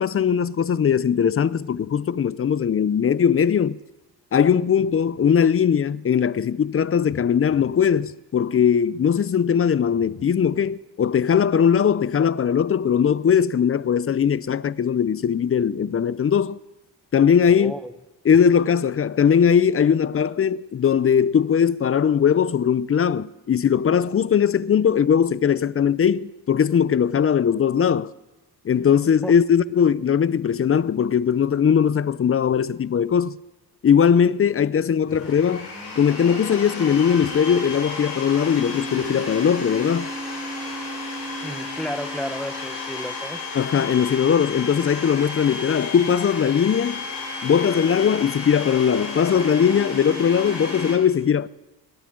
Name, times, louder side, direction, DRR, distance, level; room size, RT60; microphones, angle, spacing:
voice 1, 0.0-3.8 4.3-16.6 17.1-17.7 18.2-28.1 28.6-33.4 33.8-35.7 36.0-40.1 43.5-47.1 47.4-51.5, left 7 dB, 35° left, 0.5 m, -20 dB
voice 2, 17.5-17.9 29.2-29.4 41.4-43.4, equal, ahead, 0.9 m, -32 dB
Domestic sounds home sounds, 35.1-50.9, left 3 dB, 75° left, 7.0 m, -32 dB
27.5 x 12.0 x 3.8 m
cardioid pair, 80°, 41 cm